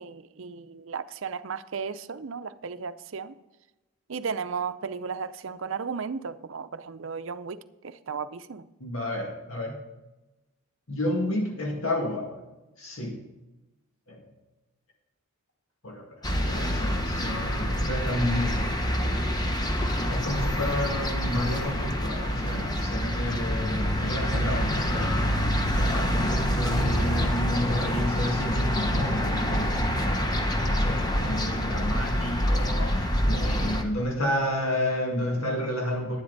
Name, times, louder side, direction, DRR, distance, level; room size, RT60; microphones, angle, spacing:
voice 1, 0.0-3.3 4.1-8.7, right 5 dB, 65° right, 0.6 m, -35 dB
voice 2, 8.8-9.8 10.9-12.4 12.8-13.2 14.1-14.3 15.8-19.4 20.1-25.4 25.8-30.3 30.5-36.2, left 1 dB, 75° left, 2.0 m, -31 dB
sound 1, 16.2-33.8, equal, 20° left, 0.9 m, -26 dB
11.5 x 10.5 x 4.0 m
head